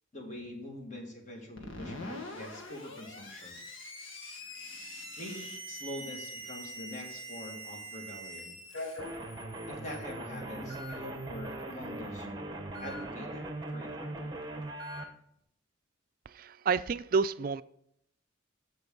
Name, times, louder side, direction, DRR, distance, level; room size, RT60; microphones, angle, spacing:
voice 1, 0.1-3.6 5.2-8.6 9.7-12.5 12.8-14.3, left 1 dB, 35° left, 1 dB, 2.0 m, -44 dB
Screech, 1.6-12.0, left 3 dB, 80° left, 1.7 m, -46 dB
Alarm, 4.4-8.4 8.7-9.1 10.0-10.1 10.7-10.9 12.7-13.0 14.8-15.0, right 2 dB, 55° left, 4.1 m, -45 dB
sound 1, 9.0-15.0, right 2 dB, 20° right, 0.9 m, -40 dB
voice 2, 16.3-17.6, right 5 dB, 45° right, 14 dB, 0.3 m, -29 dB
15.0 x 5.3 x 3.9 m, 0.72 s
head